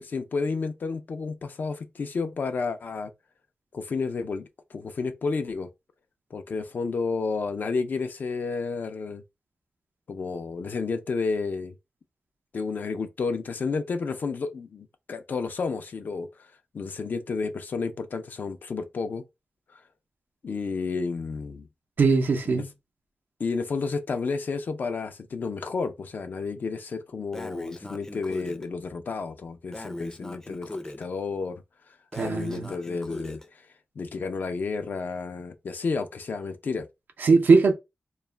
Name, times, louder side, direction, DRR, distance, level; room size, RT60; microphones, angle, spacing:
voice 1, 0.0-3.1 3.7-5.7 6.3-9.2 10.1-11.7 12.5-16.5 16.7-19.2 20.4-21.7 22.5-22.6 23.4-31.6 32.2-33.4 34.0-36.9, left 4 dB, 70° left, 0.5 m, -31 dB
voice 2, 22.0-22.7 32.1-32.7 37.2-37.7, right 4 dB, 80° right, 0.5 m, -20 dB
Breathing, 27.3-28.6 29.7-31.0 32.1-33.5, left 1 dB, 20° left, 0.4 m, -38 dB
2.3 x 2.0 x 3.1 m
cardioid pair, 55°, 3 cm